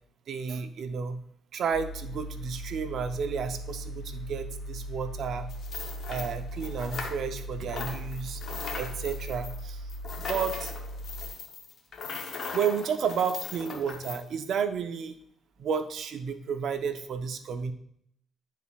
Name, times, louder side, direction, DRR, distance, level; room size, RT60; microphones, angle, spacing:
voice 1, 0.3-1.2 1.5-5.5 6.1-8.4 8.8-9.8 10.2-10.7 12.5-15.1 15.6-17.7, right 6 dB, 65° right, 8 dB, 0.6 m, -32 dB
sound 1, 1.7-11.3, equal, 75° left, 2.2 m, -39 dB
sound 2, 5.5-7.4 7.7-14.2, left 5 dB, 60° left, 0.9 m, -39 dB
10.0 x 4.1 x 2.4 m, 0.71 s
cardioid pair, 90°, 0 cm